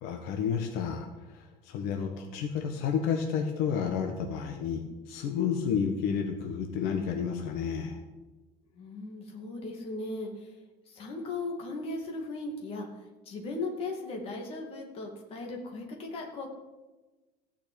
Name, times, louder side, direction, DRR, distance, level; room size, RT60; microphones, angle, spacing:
voice 1, 0.0-8.0, left 7 dB, 65° left, 3 dB, 1.4 m, -31 dB
voice 2, 8.7-10.6 10.9-12.9 13.3-16.5, left 2 dB, 35° left, 1 dB, 2.4 m, -37 dB
15.5 x 5.9 x 8.7 m, 1.2 s
cardioid pair, 180°, 17 cm